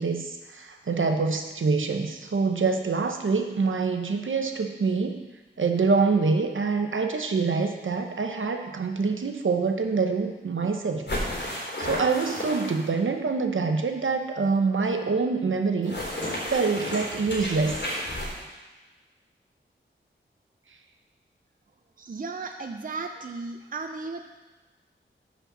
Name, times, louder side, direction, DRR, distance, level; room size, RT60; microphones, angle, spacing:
voice 1, 0.0-5.2 5.6-11.1 11.8-16.0 16.5-17.8, right 4 dB, 75° right, 5 dB, 0.9 m, -25 dB
sound 1, 11.1-13.0 15.8-18.4, left 1 dB, 60° left, 3.8 m, -32 dB
voice 2, 22.0-24.2, right 4 dB, 40° right, 5 dB, 0.6 m, -35 dB
11.0 x 4.4 x 7.4 m, 1.2 s
wide cardioid pair, 90°, 21 cm